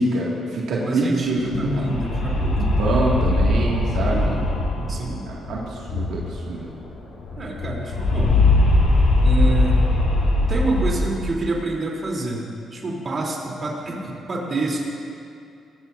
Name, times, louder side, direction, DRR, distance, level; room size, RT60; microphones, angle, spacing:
voice 1, 0.0-1.9 2.6-4.4 5.3-6.7, right 2 dB, 75° right, -5 dB, 2.2 m, -25 dB
voice 2, 0.8-2.8 4.0-4.5 4.8-5.2 7.4-8.4 9.2-9.8 10.5-14.8, right 2 dB, 40° right, -2 dB, 3.5 m, -27 dB
sound 1, 1.2-6.6 6.8-6.9 7.2-11.5, left 2 dB, 70° left, 2.9 m, -20 dB
20.0 x 16.0 x 2.7 m, 2.5 s
cardioid pair, 90°, 0 cm